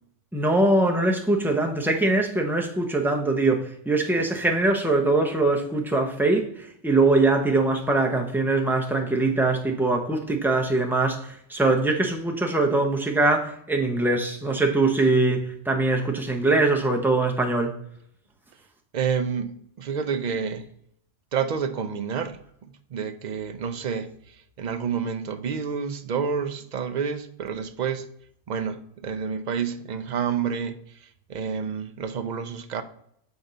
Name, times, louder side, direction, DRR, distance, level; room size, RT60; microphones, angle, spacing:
voice 1, 0.3-17.7, right 2 dB, ahead, 0.6 m, -22 dB
voice 2, 18.9-20.7 21.3-24.1 24.6-28.1 28.5-30.8 31.3-32.8, right 6 dB, 55° right, 0.5 m, -29 dB
7.1 x 4.3 x 3.9 m
omnidirectional pair, 1.2 m